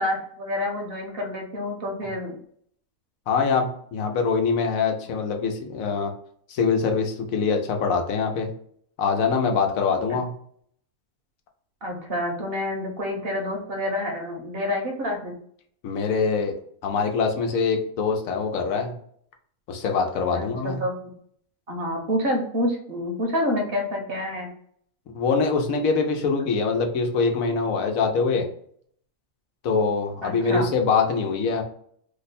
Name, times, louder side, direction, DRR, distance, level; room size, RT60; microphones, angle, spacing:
voice 1, 0.0-2.4 11.8-15.3 20.3-21.0 21.7-24.5 30.2-30.7, left 1 dB, 50° right, 1 dB, 0.8 m, -28 dB
voice 2, 3.3-6.1 6.5-8.5 9.0-10.3 15.8-16.6 16.8-18.9 19.7-20.8 25.1-28.5 29.6-31.6, left 5 dB, 85° left, 3 dB, 1.1 m, -24 dB
2.9 x 2.1 x 4.0 m, 0.63 s
omnidirectional pair, 1.4 m